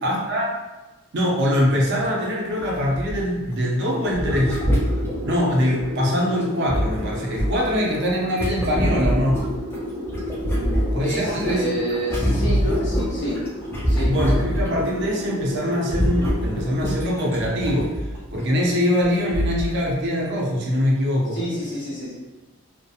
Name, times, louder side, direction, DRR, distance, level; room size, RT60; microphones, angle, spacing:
voice 1, 0.0-0.5 1.1-4.6 5.2-9.5 10.9-11.7 13.8-17.9 18.3-21.4, equal, 50° right, -2 dB, 0.5 m, -23 dB
Water Bumps Inside Rocks, 1.5-1.7 2.0-2.1 2.6-3.5 4.1-5.9 6.4-9.8 10.1-14.9 15.2-15.4 15.7-18.4 19.0-19.1 19.3-19.8 20.2-20.3, equal, 10° left, 0.3 m, -25 dB
sound 1, 3.9-16.7, left 1 dB, 10° right, 0.9 m, -33 dB
voice 2, 10.5-13.4 13.9-14.1 21.3-22.1, equal, 55° left, -6 dB, 0.8 m, -28 dB
2.7 x 2.1 x 2.3 m, 1.1 s
head